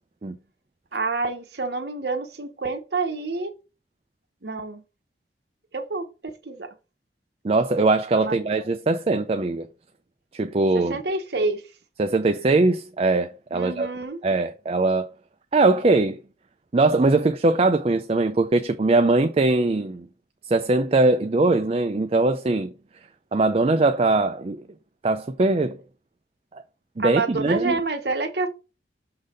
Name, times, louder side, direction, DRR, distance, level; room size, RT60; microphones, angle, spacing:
voice 1, 0.9-3.5 4.4-4.8 5.7-6.7 8.2-8.3 10.7-11.6 13.5-14.2 27.0-28.5, right 3 dB, 65° right, 1.0 m, -28 dB
voice 2, 7.4-9.7 10.3-10.9 12.0-13.9 14.2-15.1 15.5-16.2 16.7-20.1 20.5-22.7 23.3-24.6 25.0-25.8 26.5-26.6 27.0-27.8, right 2 dB, 35° right, 0.4 m, -21 dB
6.5 x 4.0 x 4.9 m
head